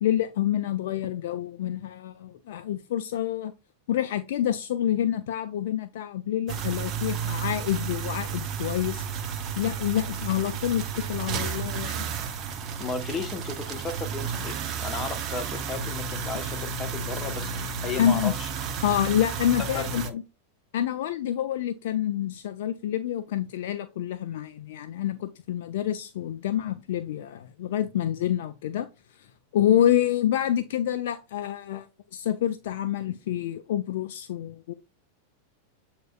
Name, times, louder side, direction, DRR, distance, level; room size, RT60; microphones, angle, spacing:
voice 1, 0.0-3.5 3.9-9.0 9.6-12.0 18.0-18.3 18.8-20.0 20.7-28.9 29.2-29.3 29.5-34.7, left 11 dB, 55° left, 0.3 m, -27 dB
sound 1, 6.5-20.1, right 6 dB, 35° right, 0.6 m, -32 dB
voice 2, 12.8-18.5 19.6-20.1, left 4 dB, 25° left, 0.8 m, -35 dB
7.5 x 2.9 x 2.3 m
figure-of-eight pair, 90°, 0 cm